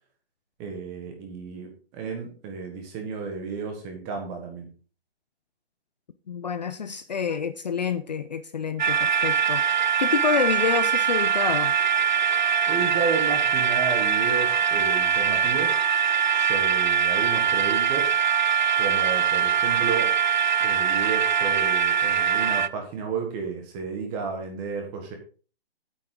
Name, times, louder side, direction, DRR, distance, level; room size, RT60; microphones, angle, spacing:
voice 1, 0.6-4.7 12.7-15.8 16.3-18.1 18.8-20.1 20.6-25.1, right 5 dB, 15° right, 2 dB, 1.4 m, -32 dB
voice 2, 6.3-11.7, left 6 dB, 40° left, 11 dB, 0.5 m, -28 dB
sound 1, 8.8-22.7, right 7 dB, 45° right, 0.4 m, -22 dB
8.8 x 7.5 x 3.8 m, 0.38 s
hypercardioid pair, 165°, 32 cm